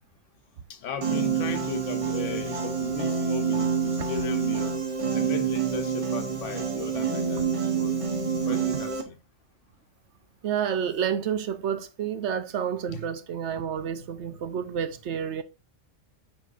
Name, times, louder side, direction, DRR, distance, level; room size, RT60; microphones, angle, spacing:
voice 1, 0.7-4.8 5.1-8.0 8.5-9.1 12.9-13.0, left 7 dB, 70° left, 1.0 m, -36 dB
Piano, 1.0-9.0, right 6 dB, 30° right, 0.8 m, -27 dB
voice 2, 10.4-15.4, right 8 dB, 65° right, 0.8 m, -29 dB
8.8 x 4.5 x 2.4 m
omnidirectional pair, 1.3 m